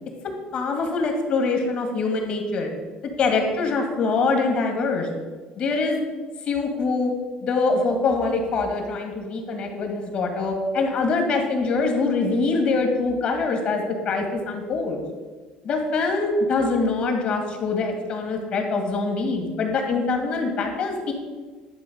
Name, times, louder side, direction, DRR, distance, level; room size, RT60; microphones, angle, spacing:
voice 1, 0.5-2.7 3.2-5.1 5.6-6.0 6.5-7.1 7.4-15.0 15.6-21.1, left 3 dB, 40° left, 3 dB, 2.1 m, -24 dB
11.5 x 4.7 x 8.0 m, 1.4 s
cardioid pair, 155°, 3 cm